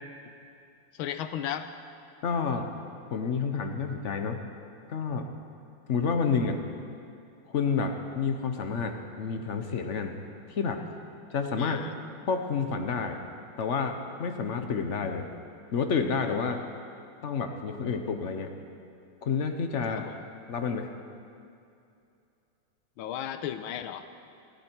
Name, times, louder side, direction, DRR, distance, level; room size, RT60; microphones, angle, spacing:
voice 1, 1.0-1.7 11.6-11.9 20.0-20.2 23.0-24.0, left 10 dB, 80° left, 10 dB, 1.5 m, -35 dB
voice 2, 2.2-2.7 3.1-4.4 4.9-5.3 5.9-6.6 7.5-10.2 10.5-10.8 11.3-11.8 12.3-13.2 13.6-15.3 15.7-16.6 17.2-18.5 19.2-20.1 20.5-20.9, left 5 dB, 55° left, 6 dB, 0.8 m, -29 dB
18.5 x 14.5 x 4.6 m, 2.6 s
omnidirectional pair, 2.3 m